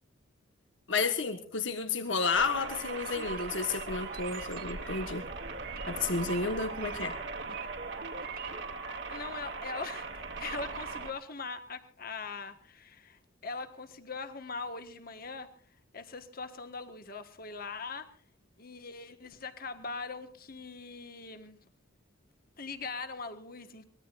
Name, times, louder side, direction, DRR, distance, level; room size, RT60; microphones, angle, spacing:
voice 1, 0.9-5.2 5.9-7.2, left 4 dB, 70° left, 7 dB, 1.6 m, -31 dB
sound 1, 2.3-11.1, right 3 dB, 65° right, 2.4 m, -40 dB
sound 2, 3.1-9.0, right 4 dB, 45° right, 1.5 m, -45 dB
voice 2, 9.1-15.5 15.9-18.1 18.6-21.6 22.6-23.8, left 4 dB, 45° left, 8 dB, 1.6 m, -41 dB
24.0 x 20.5 x 2.6 m, 0.43 s
head